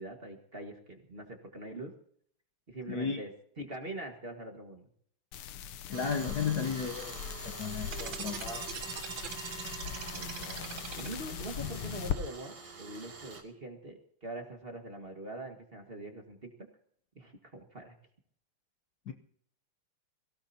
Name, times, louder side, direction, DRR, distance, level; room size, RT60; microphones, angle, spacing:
voice 1, 0.0-1.9 2.7-3.3 3.6-4.9 9.8-16.5 17.1-17.9, right 1 dB, 30° right, 4 dB, 1.8 m, -43 dB
voice 2, 2.9-3.2 5.9-8.7 19.1-19.2, left 6 dB, 55° left, 5 dB, 1.3 m, -34 dB
sound 1, 5.3-12.2, left 9 dB, 80° left, 1.7 m, -40 dB
Tools, 5.9-13.4, right 5 dB, 85° right, 3.3 m, -47 dB
sound 2, 7.9-11.4, right 8 dB, 65° right, 1.7 m, -41 dB
23.0 x 16.5 x 2.8 m, 0.64 s
omnidirectional pair, 2.4 m